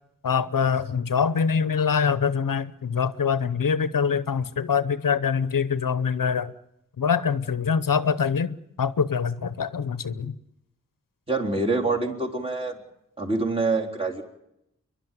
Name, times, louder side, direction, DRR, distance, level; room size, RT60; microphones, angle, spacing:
voice 1, 0.2-6.5 7.0-10.3, left 6 dB, 85° left, 14 dB, 0.8 m, -24 dB
voice 2, 11.3-12.8 13.2-14.2, right 3 dB, 20° right, -2 dB, 3.9 m, -25 dB
29.5 x 11.5 x 9.2 m, 0.83 s
wide cardioid pair, 80°, 32 cm